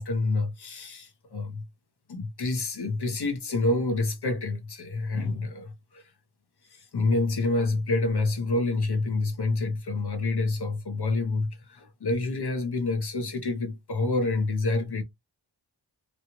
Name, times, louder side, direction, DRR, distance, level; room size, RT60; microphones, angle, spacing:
voice 1, 0.0-1.6 2.1-6.0 6.7-15.0, left 2 dB, 55° left, 1.1 m, -28 dB
3.3 x 2.3 x 2.8 m
cardioid pair, 45°, 47 cm